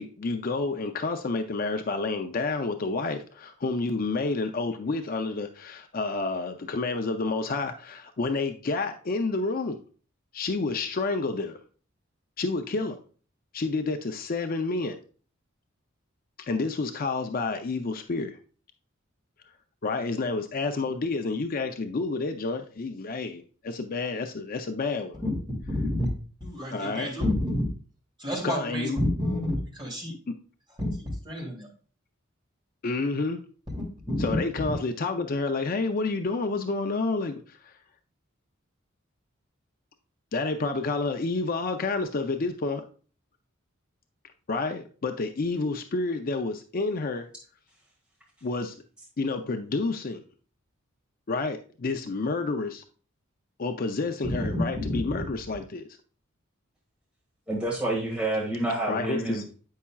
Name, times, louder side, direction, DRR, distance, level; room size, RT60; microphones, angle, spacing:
voice 1, 0.0-9.8 10.3-11.6 12.4-13.0 13.5-15.0 16.5-18.4 19.8-25.2 26.7-27.1 28.4-29.0 30.3-30.4 32.8-33.4 34.2-37.7 40.3-42.8 44.5-47.3 48.4-48.7 49.2-50.2 51.3-52.8 53.6-55.9 58.9-59.4, left 3 dB, 45° left, 0.5 m, -29 dB
voice 2, 25.7-26.1 26.4-27.7 28.2-30.1 30.8-31.7 33.7-34.4 54.4-55.0, left 1 dB, 25° right, 2.6 m, -29 dB
voice 3, 57.5-59.6, right 2 dB, 5° right, 1.4 m, -28 dB
8.4 x 5.6 x 2.3 m
head